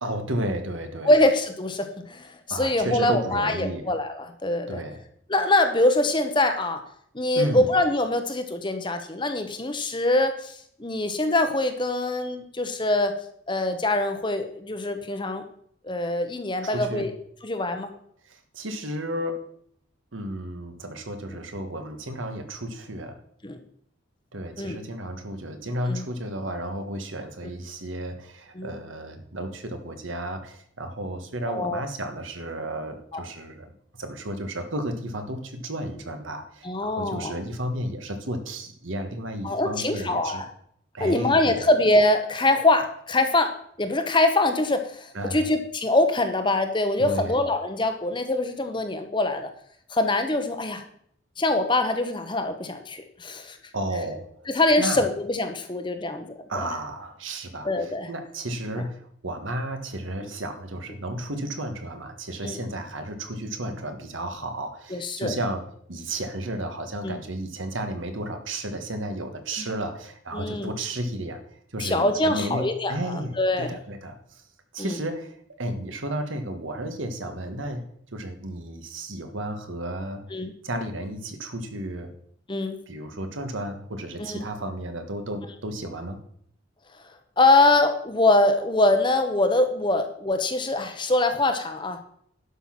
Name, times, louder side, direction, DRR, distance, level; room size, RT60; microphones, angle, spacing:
voice 1, 0.0-1.1 2.5-3.9 4.7-5.0 7.3-7.7 16.6-17.1 18.3-19.4 20.1-23.2 24.3-33.7 34.0-40.4 40.9-41.6 45.1-45.5 47.0-47.4 53.7-54.3 54.8-55.0 56.5-71.4 71.7-74.4 74.7-75.3 75.6-80.2 80.6-82.1 82.9-86.2, right 1 dB, 75° right, 6 dB, 1.5 m, -33 dB
voice 2, 1.1-4.8 5.3-6.8 7.1-13.2 13.5-15.4 15.8-17.1 17.4-17.9 23.4-23.6 24.6-24.8 25.9-26.0 28.6-28.8 31.5-31.8 33.1-33.2 36.6-37.4 39.4-40.5 41.0-49.5 49.9-50.8 51.4-53.6 54.5-56.7 57.6-58.1 60.2-60.3 62.4-62.6 64.9-65.3 67.0-67.2 69.6-69.7 70.3-70.7 71.8-73.8 74.8-75.0 80.3-80.5 82.5-82.8 84.2-84.5 87.4-92.0, left 2 dB, 25° left, 7 dB, 1.0 m, -24 dB
11.5 x 6.1 x 5.9 m, 0.65 s
head